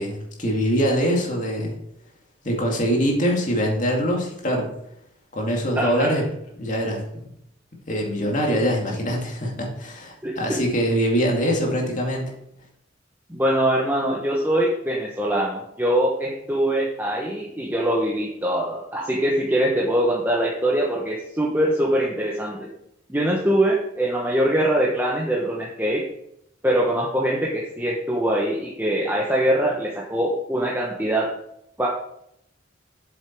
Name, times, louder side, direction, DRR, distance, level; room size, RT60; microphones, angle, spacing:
voice 1, 0.0-1.7 2.4-4.7 5.3-6.2 6.6-7.3 7.9-12.3, equal, 40° left, 0 dB, 2.2 m, -23 dB
voice 2, 5.8-6.1 10.2-10.6 13.3-22.7 23.1-26.0 26.6-31.3 31.8-31.9, right 1 dB, 10° right, -3 dB, 1.0 m, -23 dB
8.2 x 7.2 x 4.5 m, 0.76 s
head